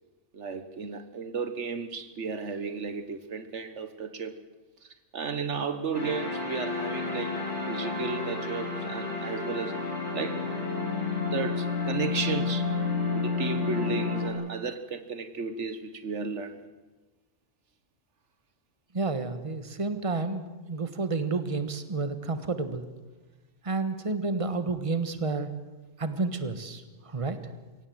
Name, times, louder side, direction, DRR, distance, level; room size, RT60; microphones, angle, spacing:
voice 1, 0.3-4.4 5.1-9.8 10.1-10.5 11.3-12.7 13.1-16.7, right 5 dB, 70° right, 1.5 m, -34 dB
sound 1, 5.9-14.3, left 4 dB, 65° left, 5.5 m, -30 dB
voice 2, 18.9-22.9 23.6-25.5 26.0-27.4, right 3 dB, 25° right, 1.5 m, -30 dB
24.0 x 17.5 x 8.0 m
omnidirectional pair, 1.3 m